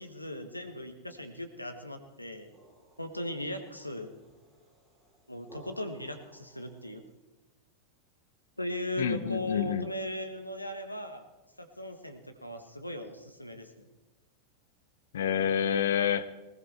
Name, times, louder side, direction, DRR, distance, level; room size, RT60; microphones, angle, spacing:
voice 1, 0.0-2.5 3.0-4.1 5.3-7.0 8.6-11.2 11.6-13.9, left 1 dB, 85° left, 7 dB, 1.4 m, -38 dB
sound 1, 2.2-7.1, right 1 dB, 10° right, 5.5 m, -58 dB
voice 2, 9.0-9.9 15.1-16.3, left 8 dB, 60° left, 14 dB, 0.8 m, -28 dB
19.5 x 19.5 x 3.5 m, 1.1 s
figure-of-eight pair, 90°, 0 cm